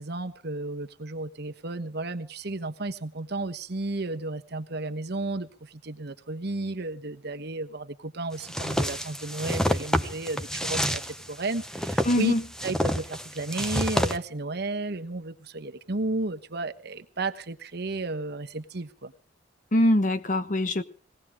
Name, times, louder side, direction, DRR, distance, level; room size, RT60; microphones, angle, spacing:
voice 1, 0.0-12.3 12.6-19.1, right 2 dB, 60° right, 1.2 m, -33 dB
sound 1, 8.5-14.2, equal, 5° left, 1.0 m, -28 dB
voice 2, 12.1-12.4 19.7-20.8, left 1 dB, 45° left, 1.2 m, -22 dB
20.5 x 17.5 x 3.6 m
head